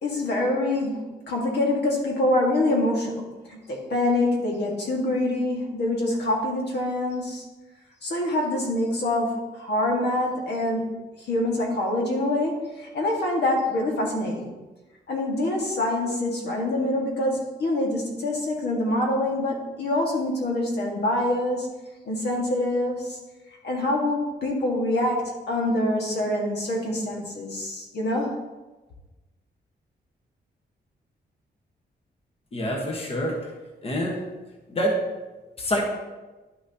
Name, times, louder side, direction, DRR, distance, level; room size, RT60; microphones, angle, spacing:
voice 1, 0.0-7.4 8.0-10.8 11.2-14.5 15.1-21.7 22.0-23.2 23.6-28.4, left 1 dB, 70° left, -1 dB, 1.8 m, -25 dB
voice 2, 32.5-33.4 33.8-34.2 34.7-34.9 35.6-35.9, equal, 35° left, 0 dB, 1.3 m, -26 dB
11.0 x 6.0 x 2.9 m, 1.2 s
wide cardioid pair, 170°, 18 cm